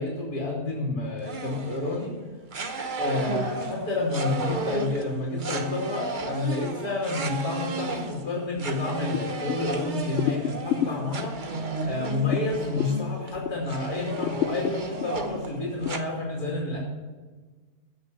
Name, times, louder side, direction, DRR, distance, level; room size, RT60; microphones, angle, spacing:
voice 1, 0.0-2.2 3.0-11.4 11.8-16.8, left 2 dB, 85° left, -3 dB, 3.1 m, -29 dB
sound 1, 1.2-2.1 2.5-16.0, right 3 dB, 40° right, 0.9 m, -34 dB
sound 2, 9.1-13.7 14.1-15.9, left 10 dB, 65° left, 0.7 m, -32 dB
16.0 x 6.6 x 7.3 m, 1.4 s
omnidirectional pair, 1.6 m